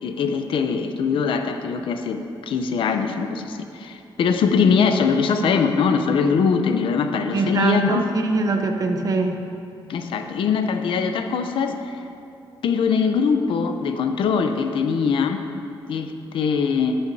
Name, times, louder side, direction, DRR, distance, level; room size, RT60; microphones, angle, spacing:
voice 1, 0.0-8.1 9.9-12.0 12.6-15.4 15.9-17.0, left 5 dB, 75° left, 6 dB, 0.7 m, -22 dB
voice 2, 7.3-9.4, right 3 dB, 40° right, 4 dB, 0.8 m, -22 dB
12.5 x 11.0 x 2.8 m, 2.6 s
wide cardioid pair, 165°, 9 cm